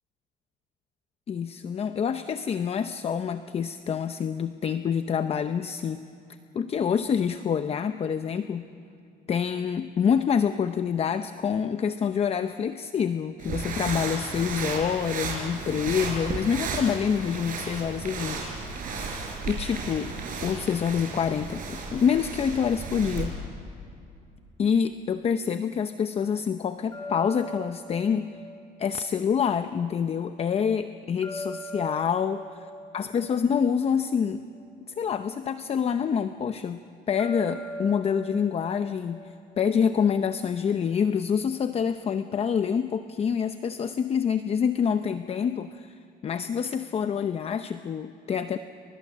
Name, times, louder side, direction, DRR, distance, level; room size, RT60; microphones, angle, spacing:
voice 1, 1.3-6.0 6.5-8.7 9.3-18.5 19.5-20.1 20.4-23.4 24.6-28.4 28.8-32.4 32.9-34.5 34.9-46.0 46.2-48.6, left 7 dB, 35° left, 10 dB, 0.7 m, -27 dB
sound 1, 13.4-23.3, right 4 dB, 55° right, 6.3 m, -34 dB
sound 2, 26.9-30.0 31.2-34.7 37.2-40.3, left 1 dB, 20° left, 4.0 m, -41 dB
30.0 x 24.5 x 7.4 m, 2.5 s
cardioid pair, 110°, 17 cm